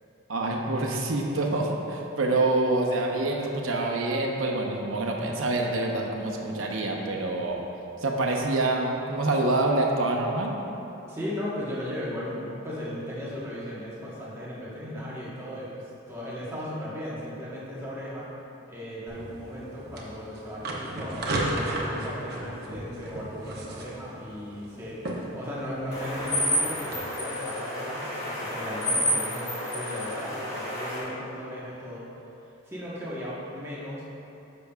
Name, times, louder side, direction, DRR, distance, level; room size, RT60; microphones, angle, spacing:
voice 1, 0.3-7.6 8.0-10.5, right 2 dB, 85° right, 0 dB, 0.9 m, -26 dB
voice 2, 11.1-18.3 18.7-25.0 25.3-32.1 32.7-34.0, equal, 15° right, -8 dB, 1.1 m, -36 dB
sound 1, 19.1-27.0, right 1 dB, 50° right, 0.9 m, -35 dB
sound 2, 25.9-31.0, equal, 30° left, 1.6 m, -30 dB
10.5 x 7.0 x 2.3 m, 2.9 s
head